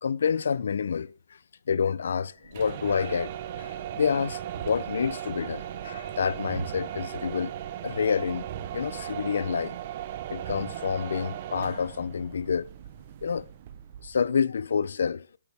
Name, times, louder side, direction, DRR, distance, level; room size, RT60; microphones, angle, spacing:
voice 1, 0.0-1.1 1.7-3.3 3.6-7.5 7.8-9.8 10.3-12.7 13.2-13.5 14.0-15.3, left 6 dB, 65° left, 0.5 m, -28 dB
sound 1, 2.4-14.3, right 11 dB, 30° right, 0.7 m, -37 dB
12.0 x 10.5 x 3.4 m
hypercardioid pair, 180°, 0 cm